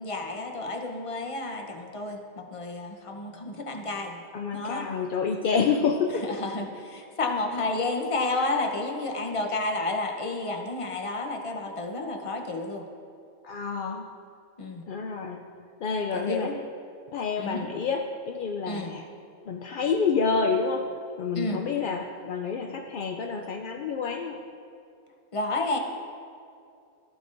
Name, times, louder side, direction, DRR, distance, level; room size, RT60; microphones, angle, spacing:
voice 1, 0.0-4.2 4.5-4.9 6.2-12.8 14.6-14.8 16.1-16.5 17.4-17.7 18.6-18.9 21.4-21.6 25.3-25.8, left 2 dB, 30° left, 3 dB, 0.7 m, -31 dB
voice 2, 4.3-6.4 13.4-14.1 14.9-15.4 15.8-16.6 17.1-19.0 19.5-20.9 21.2-24.4, left 5 dB, 70° left, 3 dB, 0.5 m, -28 dB
14.5 x 9.0 x 2.6 m, 2.4 s
omnidirectional pair, 1.4 m